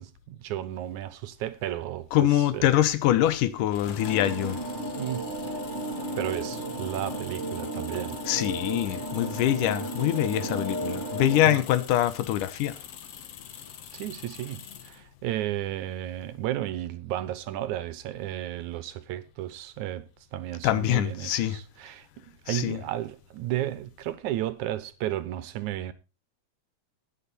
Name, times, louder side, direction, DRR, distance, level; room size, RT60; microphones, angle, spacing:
voice 1, 0.0-2.7 5.0-5.3 6.2-8.2 8.9-9.0 11.5-11.6 13.9-25.9, right 13 dB, 80° right, 2.2 m, -33 dB
voice 2, 2.1-4.6 8.3-12.7 20.6-21.6 22.5-22.8, left 13 dB, 85° left, 2.6 m, -24 dB
sound 1, 3.7-15.1, left 8 dB, 60° left, 2.1 m, -45 dB
sound 2, 4.0-11.6, right 1 dB, 30° right, 1.6 m, -34 dB
13.5 x 9.5 x 4.2 m
omnidirectional pair, 3.6 m